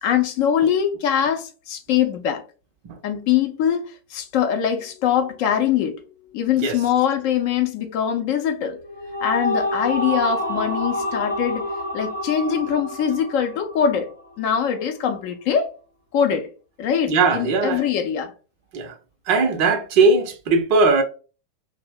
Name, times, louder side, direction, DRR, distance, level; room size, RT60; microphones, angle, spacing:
voice 1, 0.0-2.4 3.0-3.8 4.1-6.0 6.3-8.8 9.2-11.7 11.9-14.1 14.4-15.7 16.1-16.5 16.8-18.3, left 8 dB, 45° left, 0.6 m, -22 dB
sound 1, 8.7-14.2, left 1 dB, 90° right, 0.6 m, -28 dB
voice 2, 17.1-17.8 18.7-18.9 19.3-21.0, right 3 dB, 45° right, 0.6 m, -19 dB
2.6 x 2.1 x 3.5 m
figure-of-eight pair, 90°, 0 cm